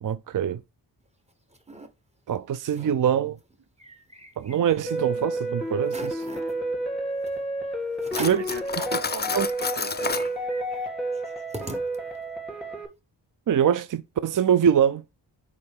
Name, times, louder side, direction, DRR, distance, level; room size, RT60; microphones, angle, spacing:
voice 1, 0.0-0.6 2.3-3.4 4.4-6.2 8.2-8.4 9.3-9.5 13.5-15.0, right 8 dB, 50° right, 0.5 m, -23 dB
sound 1, 1.1-1.9 2.3-2.4 2.6-3.0 3.4-5.0 5.4-5.5 5.8-6.5 7.3-7.4 8.0-8.6 9.0-9.1 9.4-12.4, right 1 dB, 15° right, 1.1 m, -42 dB
sound 2, 4.9-12.9, right 1 dB, ahead, 2.3 m, -30 dB
Cutlery silverware, 8.1-10.3, left 5 dB, 25° left, 0.5 m, -30 dB
voice 2, 8.1-10.3, right 6 dB, 85° right, 1.3 m, -39 dB
6.7 x 4.9 x 3.6 m
wide cardioid pair, 95°, 41 cm